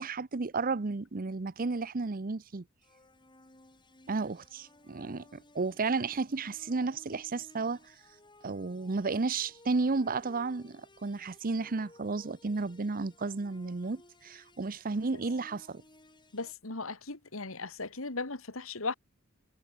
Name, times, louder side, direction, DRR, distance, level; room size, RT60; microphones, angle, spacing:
voice 1, 0.0-2.6 4.1-7.8 8.4-15.8, right 3 dB, 40° right, 0.7 m, -33 dB
sound 1, 2.8-16.5, left 2 dB, 20° left, 6.9 m, -59 dB
voice 2, 16.3-18.9, left 3 dB, 70° left, 2.4 m, -37 dB
head